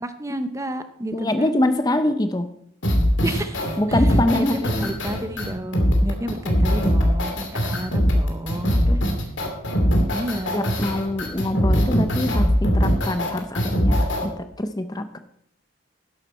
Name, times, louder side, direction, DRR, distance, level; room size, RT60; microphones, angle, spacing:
voice 1, 0.0-1.6 3.2-4.1 4.3-9.1 10.1-10.8, right 1 dB, 15° right, 9 dB, 0.7 m, -31 dB
voice 2, 1.1-2.5 3.8-4.9 8.7-9.0 10.5-15.2, left 1 dB, 20° left, 9 dB, 0.6 m, -24 dB
sound 1, 2.8-14.3, equal, 70° left, 2.6 m, -21 dB
12.0 x 11.0 x 4.3 m, 0.70 s
head